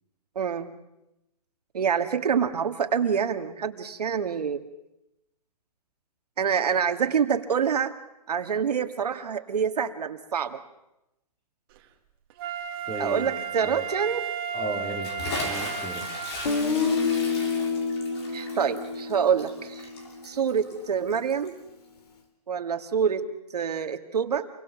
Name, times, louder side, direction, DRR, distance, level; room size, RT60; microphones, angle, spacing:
voice 1, 0.4-0.7 1.7-4.7 6.4-7.9 8.3-10.6 13.0-14.3 18.3-19.9 20.2-21.6 22.5-24.5, right 7 dB, 75° right, 6 dB, 2.2 m, -26 dB
Wind instrument woodwind instrument, 12.4-16.7 17.2-17.3, right 7 dB, 35° right, 2.4 m, -33 dB
voice 2, 12.8-13.8 14.5-16.1, right 1 dB, 10° left, 3 dB, 4.4 m, -35 dB
Bathtub (filling or washing) / Splash splatter, 15.0-21.6, left 3 dB, 45° left, 6.9 m, -38 dB
Guitar, 16.4-20.4, left 4 dB, 75° left, 3.9 m, -28 dB
28.0 x 23.0 x 7.3 m, 0.92 s
hypercardioid pair, 155°, 20 cm